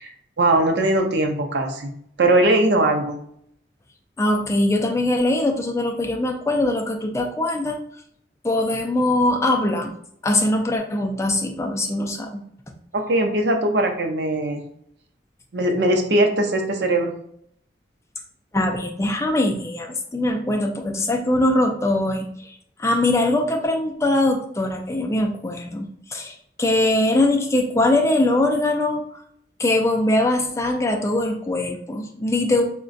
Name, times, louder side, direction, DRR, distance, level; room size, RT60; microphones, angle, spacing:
voice 1, 0.0-1.9 2.2-3.2 12.9-14.6 15.5-17.1, right 1 dB, 75° right, 4 dB, 0.6 m, -20 dB
voice 2, 4.2-7.8 8.4-9.9 10.2-12.4 18.5-22.5 22.8-29.0 29.6-32.6, left 1 dB, 15° left, 2 dB, 0.3 m, -22 dB
4.7 x 2.2 x 2.5 m, 0.69 s
head